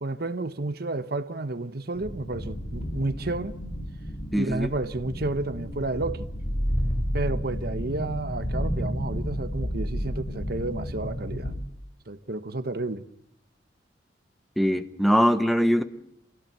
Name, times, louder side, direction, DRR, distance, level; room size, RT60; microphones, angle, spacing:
voice 1, 0.0-3.6 4.4-6.3 7.1-11.5 12.1-13.0, right 2 dB, 55° right, 1.2 m, -31 dB
sound 1, 2.0-11.6, equal, 55° left, 3.8 m, -31 dB
voice 2, 4.3-4.7 14.6-15.8, equal, ahead, 1.2 m, -22 dB
27.5 x 17.0 x 9.5 m
head